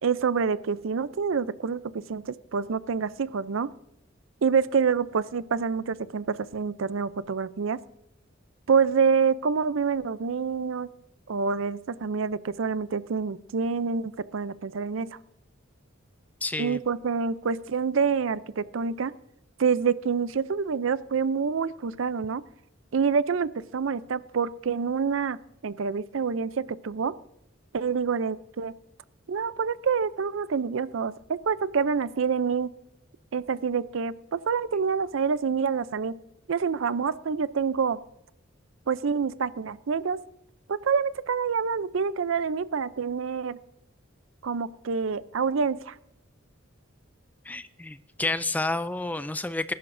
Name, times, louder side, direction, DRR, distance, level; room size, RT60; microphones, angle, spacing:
voice 1, 0.0-1.8 2.1-3.7 4.4-7.8 8.7-10.9 11.3-15.1 16.6-19.1 19.6-22.4 22.9-25.4 25.6-27.1 27.7-28.7 29.3-32.7 33.3-36.1 36.5-38.0 38.9-40.2 40.7-43.6 44.4-45.9, right 5 dB, 80° right, 16 dB, 0.5 m, -27 dB
voice 2, 16.4-16.8 47.5-49.7, left 2 dB, 10° left, 13 dB, 0.4 m, -30 dB
20.5 x 11.0 x 2.6 m, 0.83 s
head